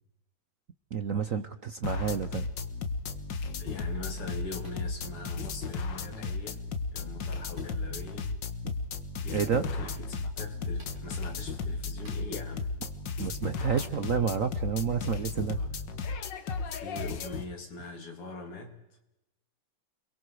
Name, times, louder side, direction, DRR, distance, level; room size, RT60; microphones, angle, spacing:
voice 1, 0.9-2.4 9.3-9.6 13.2-15.6, right 7 dB, 55° right, 10 dB, 0.9 m, -29 dB
sound 1, 1.8-17.4, left 4 dB, 60° left, 2.0 m, -35 dB
voice 2, 3.6-8.3 9.1-12.7 15.6-15.7 16.6-18.8, left 3 dB, 85° left, 3 dB, 4.2 m, -42 dB
sound 2, 4.6-4.8 6.1-6.2 7.5-7.7 9.3-9.5 10.7-11.0 12.0-12.2 13.7-14.0, equal, 30° right, 6.9 m, -49 dB
30.0 x 22.5 x 4.9 m, 0.90 s
omnidirectional pair, 2.4 m